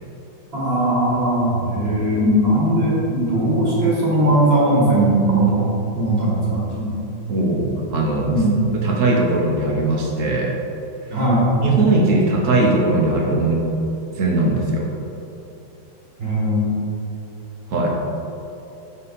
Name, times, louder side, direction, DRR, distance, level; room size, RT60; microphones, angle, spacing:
voice 1, 0.5-6.9 8.2-8.6 11.1-11.4 16.2-16.7, right 1 dB, 35° right, -6 dB, 1.5 m, -19 dB
voice 2, 7.3-8.3 8.8-10.5 11.6-13.6 14.2-14.9 17.7-17.9, right 2 dB, 55° right, -2 dB, 1.0 m, -19 dB
5.6 x 5.3 x 4.1 m, 2.9 s
omnidirectional pair, 2.0 m